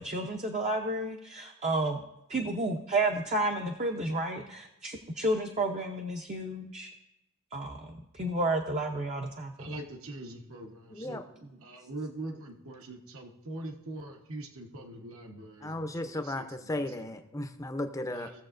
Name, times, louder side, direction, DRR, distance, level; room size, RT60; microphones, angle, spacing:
voice 1, 0.0-2.0 2.3-6.9 7.5-9.7 11.0-11.2, right 2 dB, 30° right, 2 dB, 0.6 m, -31 dB
voice 2, 9.6-11.2 11.6-17.1 18.1-18.4, right 2 dB, 70° right, 3 dB, 1.1 m, -43 dB
voice 3, 10.9-11.2 15.6-18.3, left 1 dB, 15° left, 7 dB, 0.5 m, -35 dB
16.5 x 7.1 x 2.5 m, 0.89 s
head